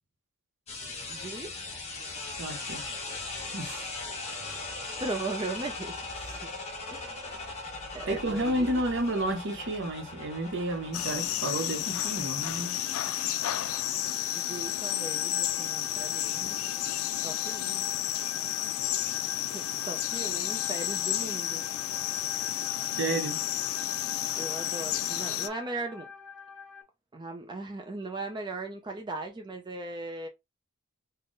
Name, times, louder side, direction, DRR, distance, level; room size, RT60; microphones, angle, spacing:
sound 1, 0.7-12.7, left 3 dB, 30° left, 1.1 m, -39 dB
voice 1, 1.1-1.5 5.0-6.5 6.9-8.7 14.3-16.6 17.2-17.9 19.5-21.6 22.0-22.1 24.4-26.1 27.1-30.3, right 2 dB, 20° right, 0.5 m, -38 dB
voice 2, 2.4-2.9 3.5-3.9 8.1-12.8 13.2-13.4 22.9-23.4, right 1 dB, 55° right, 0.8 m, -31 dB
sound 2, 10.9-25.5, left 12 dB, 70° left, 0.4 m, -31 dB
sound 3, 11.8-26.8, left 5 dB, 5° left, 0.9 m, -47 dB
3.6 x 2.2 x 3.8 m
head